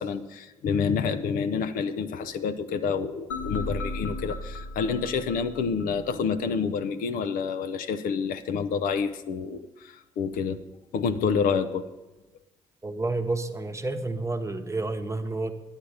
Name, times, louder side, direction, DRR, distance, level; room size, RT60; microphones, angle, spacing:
voice 1, 0.0-10.6 10.9-11.9, left 6 dB, 60° left, 9 dB, 0.7 m, -28 dB
sound 1, 3.3-6.4, left 2 dB, 85° left, 1.3 m, -35 dB
voice 2, 12.8-15.5, right 2 dB, 20° right, 7 dB, 1.1 m, -30 dB
10.5 x 9.0 x 5.0 m, 1.0 s
figure-of-eight pair, 45°, 16 cm